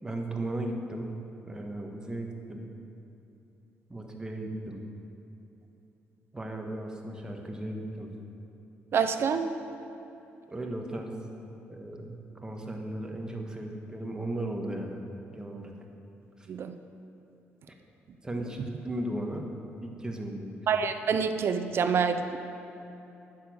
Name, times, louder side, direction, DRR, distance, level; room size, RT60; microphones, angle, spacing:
voice 1, 0.0-1.1 1.5-2.7 3.9-4.8 6.3-8.1 10.5-11.1 11.7-15.0 15.3-15.7 18.2-19.4 19.8-20.6, right 1 dB, 15° right, 2 dB, 1.4 m, -36 dB
voice 2, 8.9-9.5 16.5-16.7 20.7-22.4, right 6 dB, 55° right, 9 dB, 0.7 m, -27 dB
9.6 x 6.9 x 7.8 m, 2.9 s
cardioid pair, 90°, 5 cm